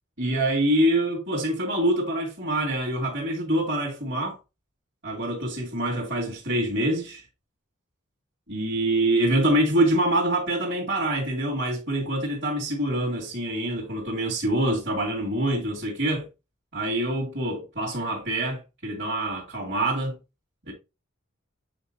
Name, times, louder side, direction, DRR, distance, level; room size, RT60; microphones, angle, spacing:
voice 1, 0.2-4.4 5.0-7.2 8.5-16.3 16.7-20.2 20.7-20.8, right 1 dB, 55° right, 2.6 m, -25 dB
8.6 x 4.5 x 2.8 m
head